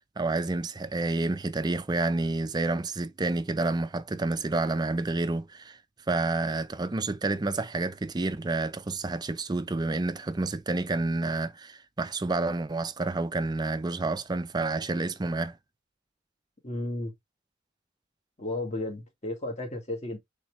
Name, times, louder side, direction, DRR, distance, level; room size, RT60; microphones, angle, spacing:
voice 1, 0.0-5.8 6.1-15.6, right 2 dB, 20° right, 0.4 m, -29 dB
voice 2, 16.6-17.1 18.4-20.2, left 2 dB, 35° left, 1.9 m, -33 dB
4.3 x 3.4 x 3.1 m
head